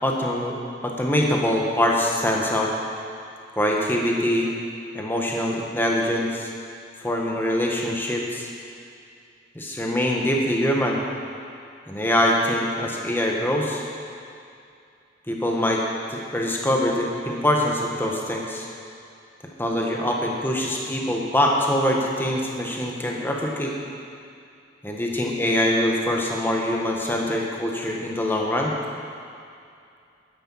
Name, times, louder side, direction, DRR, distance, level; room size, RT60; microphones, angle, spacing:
voice 1, 0.0-2.7 3.6-4.5 4.9-6.5 7.0-8.5 9.5-11.0 11.9-13.8 15.3-15.8 16.1-18.7 19.6-23.7 24.8-28.7, left 1 dB, 10° left, -1 dB, 1.5 m, -24 dB
12.5 x 10.0 x 5.7 m, 2.4 s
head